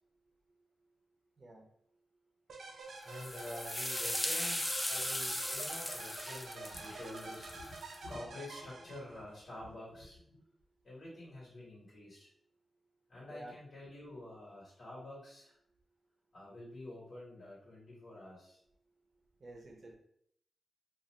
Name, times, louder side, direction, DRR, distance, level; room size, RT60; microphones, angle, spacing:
voice 1, 1.4-1.7 13.3-13.5 19.4-19.9, right 1 dB, 45° right, 1 dB, 0.6 m, -50 dB
sound 1, 2.5-9.4, right 3 dB, 85° right, 0.4 m, -48 dB
voice 2, 3.0-10.4 10.8-12.3 13.1-15.6 16.3-18.6, left 1 dB, 70° left, -8 dB, 1.3 m, -48 dB
sound 2, 3.1-8.0, left 1 dB, 10° left, 0.4 m, -38 dB
2.5 x 2.4 x 3.0 m, 0.70 s
wide cardioid pair, 95°, 0 cm